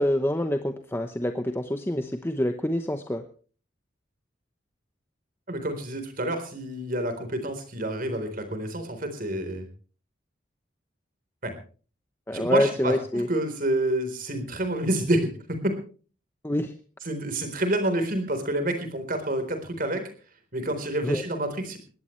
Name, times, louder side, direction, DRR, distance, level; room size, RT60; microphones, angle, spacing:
voice 1, 0.0-3.2 12.3-13.3 16.4-16.7 21.0-21.2, left 1 dB, 15° left, 7 dB, 0.9 m, -26 dB
voice 2, 5.5-9.7 11.4-11.5 12.3-15.6 17.0-20.0 20.5-21.8, right 1 dB, 50° right, 8 dB, 4.0 m, -28 dB
21.5 x 17.0 x 3.2 m, 0.39 s
head